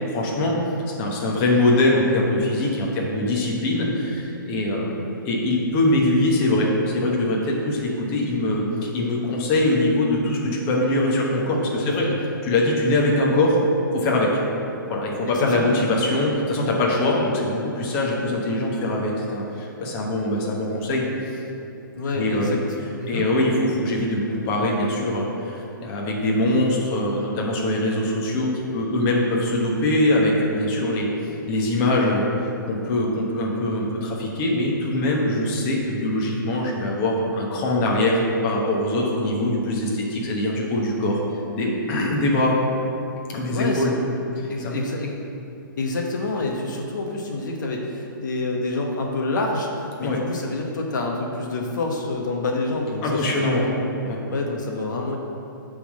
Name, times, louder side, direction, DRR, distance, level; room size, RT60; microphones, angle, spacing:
voice 1, 0.1-0.6 1.0-12.1 12.4-13.6 13.9-14.4 14.9-21.4 22.1-22.5 23.1-31.1 31.5-32.2 32.6-41.2 41.5-42.6 43.3-43.9 44.4-44.8 50.0-50.2 53.0-53.7 54.0-54.2, left 1 dB, 25° left, -3 dB, 1.2 m, -22 dB
voice 2, 11.8-12.2 15.3-15.7 21.9-22.6 23.0-23.3 26.5-26.8 43.5-44.0 44.5-45.1 45.8-53.7 54.3-55.2, left 2 dB, 60° left, 1 dB, 1.0 m, -27 dB
8.2 x 3.8 x 6.5 m, 2.8 s
hypercardioid pair, 155°, 12 cm